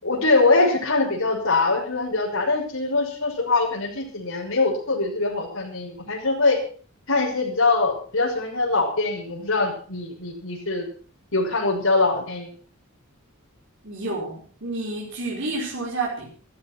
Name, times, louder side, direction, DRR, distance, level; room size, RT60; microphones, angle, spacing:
voice 1, 0.0-6.6 7.1-10.9 11.3-12.5, left 3 dB, 70° left, -1 dB, 6.0 m, -23 dB
voice 2, 13.8-16.4, right 2 dB, 60° right, -4 dB, 5.2 m, -30 dB
14.0 x 14.0 x 6.2 m, 0.43 s
head